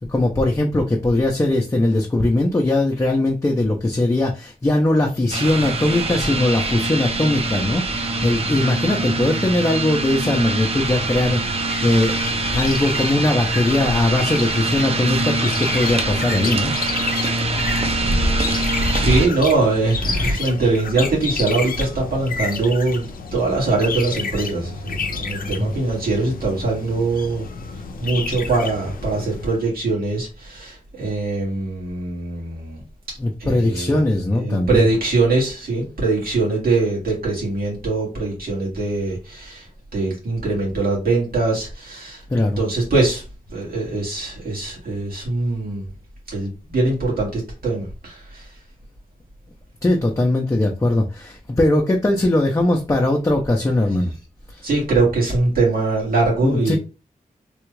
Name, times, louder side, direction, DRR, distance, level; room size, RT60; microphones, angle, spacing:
voice 1, 0.1-12.1 12.5-16.7 25.4-25.7 33.2-34.9 42.3-42.6 49.8-54.1 54.5-54.7 56.4-56.8, left 1 dB, 20° left, 0.5 m, -20 dB
sound 1, 5.3-19.3, right 2 dB, 40° right, 0.6 m, -23 dB
sound 2, 11.6-29.6, left 5 dB, 75° left, 0.5 m, -31 dB
voice 2, 18.0-18.6 18.9-27.5 28.0-32.8 33.4-34.0 34.4-39.7 39.9-42.2 42.6-43.2 43.5-45.9 46.3-48.5 54.6-56.8, right 3 dB, 85° right, 1.9 m, -22 dB
3.4 x 2.3 x 3.1 m
wide cardioid pair, 105°, 15 cm